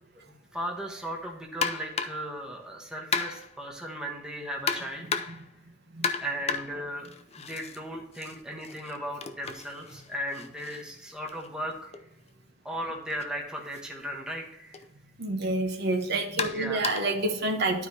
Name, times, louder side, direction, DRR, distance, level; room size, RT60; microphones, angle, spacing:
voice 1, 0.5-5.4 6.2-7.1 7.3-11.9 12.6-14.8 16.5-17.0, equal, 5° right, -1 dB, 1.1 m, -36 dB
sound 1, 1.6-2.3 3.1-3.6 4.7-5.5 6.0-7.8 8.1-12.0 13.1-13.3 13.7-13.8 14.7-14.9 16.4-17.2, left 5 dB, 30° left, 0.5 m, -34 dB
voice 2, 15.2-17.9, right 2 dB, 55° right, 3 dB, 1.0 m, -28 dB
12.0 x 4.7 x 2.8 m, 0.86 s
head